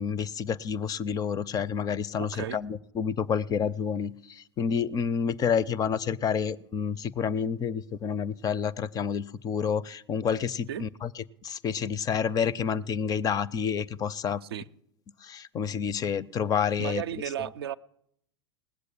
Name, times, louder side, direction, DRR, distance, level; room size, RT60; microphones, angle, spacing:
voice 1, 0.0-11.1 11.4-14.4 15.2-17.0, left 7 dB, 25° left, 0.5 m, -29 dB
voice 2, 2.2-2.6 10.7-10.9 14.4-14.7 16.8-17.7, right 10 dB, 65° right, 0.5 m, -34 dB
18.5 x 8.1 x 8.8 m
figure-of-eight pair, 85°, 14 cm